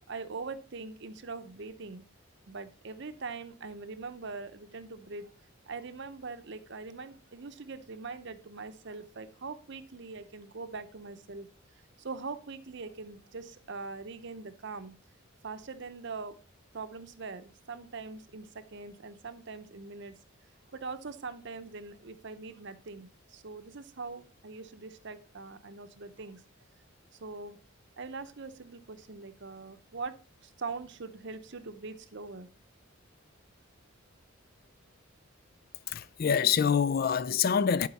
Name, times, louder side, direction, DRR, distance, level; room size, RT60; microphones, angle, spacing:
voice 1, 0.1-2.1 2.5-5.3 5.7-11.5 12.0-15.0 15.4-16.4 16.7-20.2 20.7-26.4 27.2-27.6 28.0-30.2 30.4-32.5, right 4 dB, 55° right, 0.7 m, -42 dB
voice 2, 35.9-37.9, left 7 dB, 45° left, 0.3 m, -26 dB
11.5 x 4.6 x 4.1 m
head